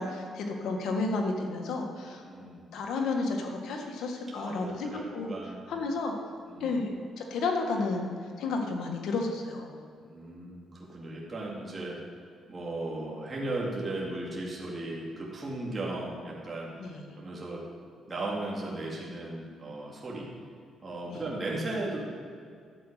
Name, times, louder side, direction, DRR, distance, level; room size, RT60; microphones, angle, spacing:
voice 1, 0.0-2.2 2.7-5.3 5.7-6.1 6.6-8.1 8.4-9.8 16.8-17.1 21.1-21.2, left 3 dB, 80° left, 2 dB, 1.6 m, -32 dB
voice 2, 2.2-2.8 4.3-5.7 6.4-6.8 10.0-12.0 12.5-17.6 18.1-20.3 20.8-22.0, right 2 dB, 30° right, -4 dB, 2.5 m, -36 dB
11.5 x 7.8 x 5.0 m, 2.3 s
cardioid pair, 90°, 0 cm